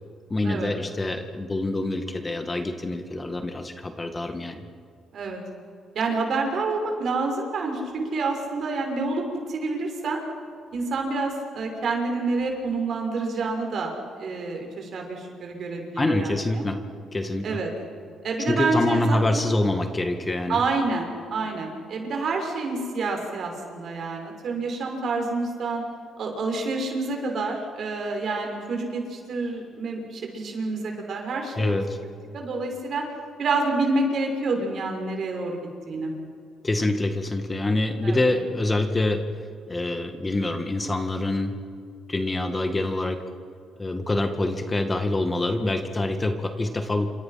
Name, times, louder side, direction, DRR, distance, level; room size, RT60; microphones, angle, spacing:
voice 1, 0.3-4.6 16.0-16.8 17.1-17.5 18.5-20.6 31.6-32.0 36.6-39.2 39.7-41.5 42.1-43.2 43.8-47.1, left 2 dB, 20° left, 6 dB, 1.9 m, -25 dB
voice 2, 5.9-10.2 10.7-16.7 17.4-17.7 18.2-19.5 20.5-25.8 26.2-31.8 32.3-33.0 33.4-35.6 35.9-36.1 38.0-38.3, right 3 dB, 60° right, 2 dB, 6.0 m, -28 dB
28.0 x 26.0 x 5.9 m, 2.3 s
cardioid pair, 90°, 0 cm